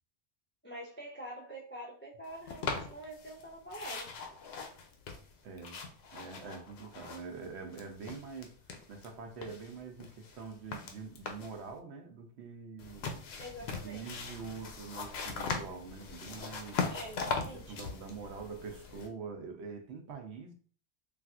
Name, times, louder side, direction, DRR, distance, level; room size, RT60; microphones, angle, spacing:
voice 1, 0.6-4.1 13.4-14.1 16.9-17.8, right 1 dB, 20° left, 0.3 m, -45 dB
sound 1, 2.5-3.4 3.7-7.5 7.7-9.1 9.4-11.6 12.8-19.1, left 5 dB, 65° left, 0.7 m, -40 dB
voice 2, 5.4-5.8 6.1-13.2 13.8-16.8 17.4-20.5, right 5 dB, 70° right, 0.8 m, -45 dB
3.3 x 2.4 x 2.4 m
omnidirectional pair, 1.2 m